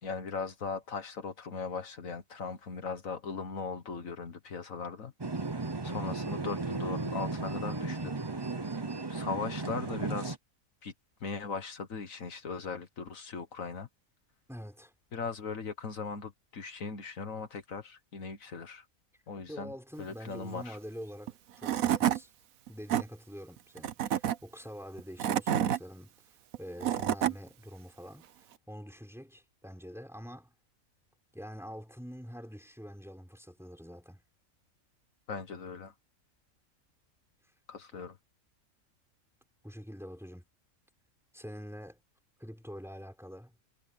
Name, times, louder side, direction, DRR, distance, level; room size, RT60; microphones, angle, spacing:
voice 1, 0.0-8.5 9.1-10.4 10.8-10.9 11.2-13.9 15.1-18.9 19.3-19.7 20.0-20.8 35.3-35.9 37.7-38.2, left 5 dB, 70° left, 1.8 m, -39 dB
sound 1, 5.2-10.4, right 3 dB, 20° right, 0.9 m, -35 dB
voice 2, 14.5-14.9 19.5-22.3 22.7-26.1 26.6-30.5 31.3-34.2 39.6-40.5 41.3-42.0 42.4-43.5, equal, ahead, 5.7 m, -46 dB
Tools / Wood, 21.3-21.4 21.6-22.2 22.7-23.0 23.8-24.4 25.0-25.8 26.5-27.3, right 10 dB, 75° right, 1.3 m, -28 dB
omnidirectional pair, 1.4 m